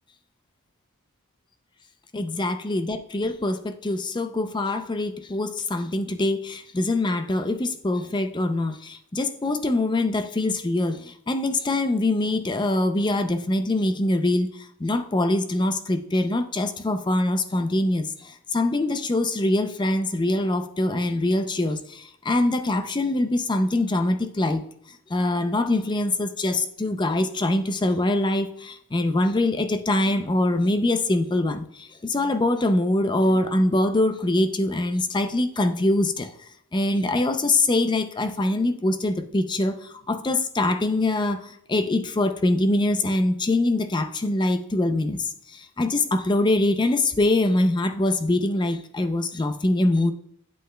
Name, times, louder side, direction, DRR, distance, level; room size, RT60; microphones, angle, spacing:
voice 1, 2.1-24.6 25.1-36.3 36.7-41.4 41.7-50.1, left 2 dB, 20° left, 8 dB, 0.4 m, -24 dB
8.2 x 7.8 x 2.2 m, 0.69 s
head